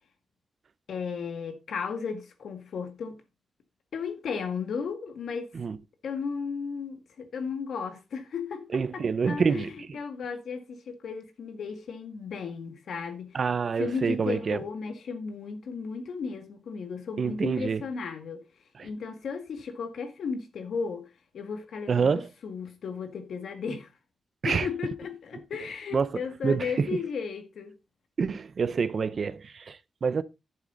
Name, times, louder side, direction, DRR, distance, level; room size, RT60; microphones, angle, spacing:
voice 1, 0.9-3.2 3.9-5.5 6.0-13.4 13.8-18.4 18.8-23.9 24.5-27.7, left 5 dB, 75° left, 1.9 m, -35 dB
voice 2, 8.7-9.7 13.3-14.6 17.2-17.8 18.8-18.9 21.9-22.2 24.4-24.7 25.9-26.1 26.4-26.9 28.2-30.2, right 5 dB, 45° right, 0.6 m, -27 dB
10.5 x 7.5 x 3.9 m
wide cardioid pair, 180°, 0 cm